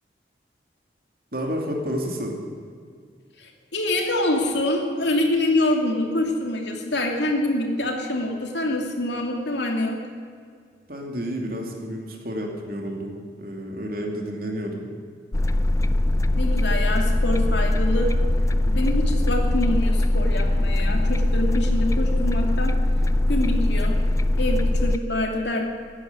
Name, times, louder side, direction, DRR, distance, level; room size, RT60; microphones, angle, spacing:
voice 1, 1.3-2.3 10.9-14.9, equal, 55° right, 1 dB, 2.7 m, -30 dB
voice 2, 3.4-10.0 16.4-18.2 18.7-22.8 23.3-24.0 24.3-25.6, left 1 dB, 80° left, 2 dB, 2.6 m, -25 dB
sound 1, 15.3-25.0, left 1 dB, 15° left, 0.4 m, -21 dB
15.0 x 9.7 x 9.5 m, 2.1 s
head